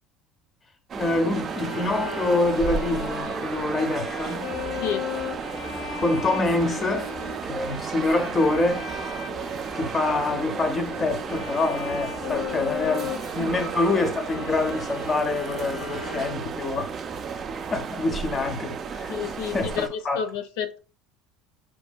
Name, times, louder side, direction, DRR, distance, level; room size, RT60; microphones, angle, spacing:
voice 1, 0.9-4.5 6.0-7.1 7.4-8.9 9.7-20.2, left 2 dB, 20° left, 0.6 m, -26 dB
sound 1, 0.9-19.9, right 5 dB, 30° right, 0.4 m, -33 dB
Bowed string instrument, 1.4-16.7, left 6 dB, 60° left, 1.0 m, -37 dB
voice 2, 19.1-20.8, left 8 dB, 85° left, 0.6 m, -30 dB
5.6 x 2.7 x 2.2 m
cardioid pair, 140°, 0 cm